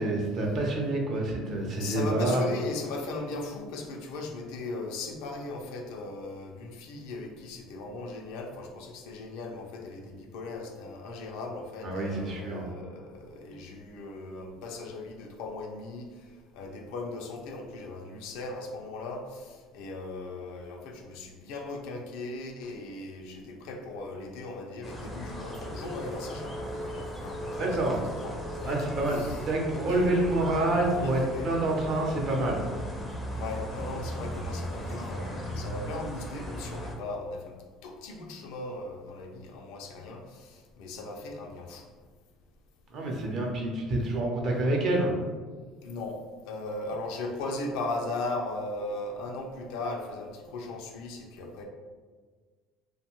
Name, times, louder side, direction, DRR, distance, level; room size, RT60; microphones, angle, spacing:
voice 1, 0.0-2.4 11.8-12.6 27.6-28.0 28.7-32.6 42.9-45.1, right 2 dB, 45° right, -1 dB, 0.6 m, -27 dB
voice 2, 1.8-29.4 29.9-31.5 33.3-37.6 37.8-41.9 45.8-46.2 46.4-51.6, left 2 dB, 80° left, 1 dB, 0.4 m, -38 dB
sound 1, 24.8-36.9, equal, 10° left, 0.4 m, -37 dB
2.6 x 2.2 x 2.9 m, 1.5 s
cardioid pair, 130°, 0 cm